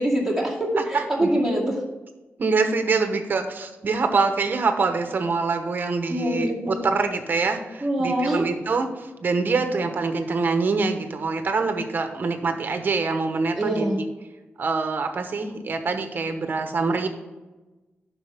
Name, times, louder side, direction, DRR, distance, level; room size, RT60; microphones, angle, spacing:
voice 1, 0.0-1.8 6.1-6.8 7.8-8.5 13.5-14.0, right 1 dB, 5° right, -4 dB, 2.2 m, -24 dB
voice 2, 0.9-1.3 2.4-13.9 14.6-17.1, right 4 dB, 50° right, 7 dB, 1.0 m, -25 dB
9.8 x 6.2 x 3.5 m, 1.1 s
wide cardioid pair, 160°, 4 cm